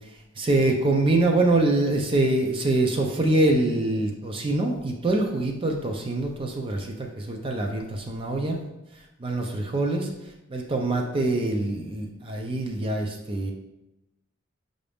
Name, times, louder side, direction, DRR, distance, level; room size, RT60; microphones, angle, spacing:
voice 1, 0.4-8.6 9.2-10.1 10.5-13.5, right 2 dB, 25° right, 2 dB, 0.4 m, -24 dB
5.7 x 2.6 x 3.4 m, 0.94 s
head